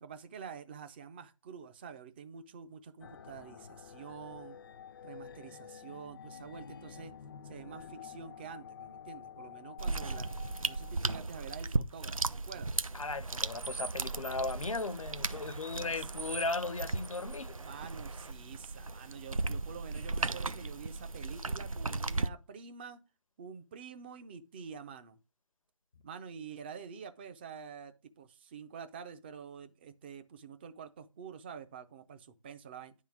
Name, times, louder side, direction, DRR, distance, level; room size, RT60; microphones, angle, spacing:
voice 1, 0.0-4.6 5.0-7.1 7.4-10.3 10.6-12.8 15.3-16.1 17.6-23.0 23.4-25.2 26.0-32.9, right 6 dB, 20° right, 0.4 m, -47 dB
sound 1, 3.0-11.0, left 7 dB, 40° left, 0.4 m, -49 dB
sound 2, 9.8-22.3, right 3 dB, 90° right, 0.5 m, -36 dB
voice 2, 12.9-17.5, left 3 dB, 75° left, 0.7 m, -36 dB
sound 3, 13.2-18.3, right 5 dB, 70° right, 0.8 m, -47 dB
10.0 x 3.7 x 6.1 m
figure-of-eight pair, 140°, 17 cm